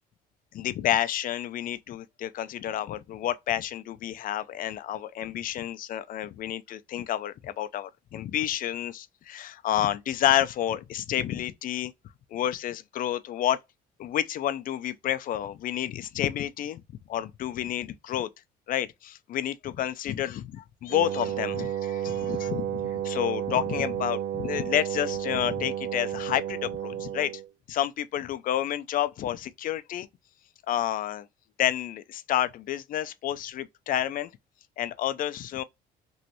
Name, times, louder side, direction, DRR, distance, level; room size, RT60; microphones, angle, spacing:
voice 1, 0.5-11.9 12.3-13.6 14.0-16.8 17.1-18.3 18.7-27.3 27.7-30.1 30.7-31.3 31.6-34.3 34.8-35.6, left 11 dB, 55° left, 0.4 m, -30 dB
Wind instrument woodwind instrument, 20.9-27.5, right 11 dB, 65° right, 0.5 m, -32 dB
3.1 x 2.8 x 2.6 m
cardioid pair, 110°, 17 cm